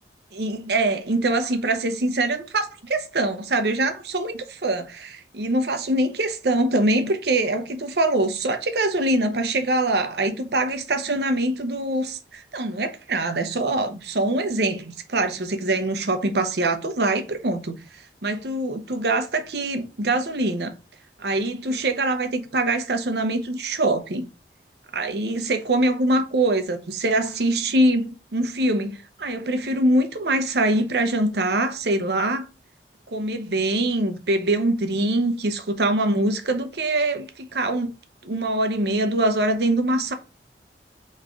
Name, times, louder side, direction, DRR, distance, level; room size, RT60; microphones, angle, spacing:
voice 1, 0.3-17.8 18.2-20.7 21.2-24.3 24.9-32.5 33.1-37.9 38.2-40.1, right 2 dB, 70° right, 0.7 m, -23 dB
3.5 x 3.2 x 3.7 m
head